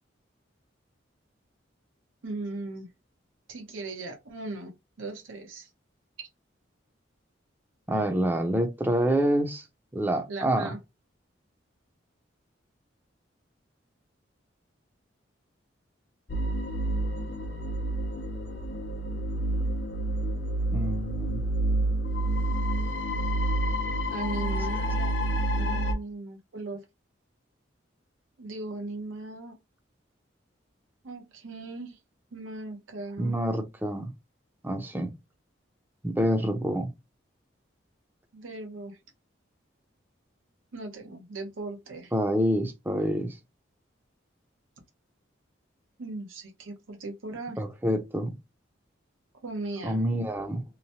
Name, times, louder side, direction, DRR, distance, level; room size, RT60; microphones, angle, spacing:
voice 1, 2.2-2.9 3.5-5.7 6.2-6.3 10.3-10.8 24.1-25.1 25.6-26.8 28.4-29.6 31.0-32.0 32.3-33.3 38.3-39.0 40.7-42.1 46.0-47.6 49.4-50.0, right 2 dB, 90° right, 0.7 m, -38 dB
voice 2, 7.9-9.6 9.9-10.7 20.7-21.4 33.2-34.1 34.6-35.1 36.0-36.9 42.1-43.4 47.6-48.3 49.8-50.6, right 1 dB, 10° right, 0.5 m, -27 dB
sound 1, 16.3-25.9, right 1 dB, 65° left, 0.6 m, -28 dB
2.9 x 2.1 x 2.7 m
head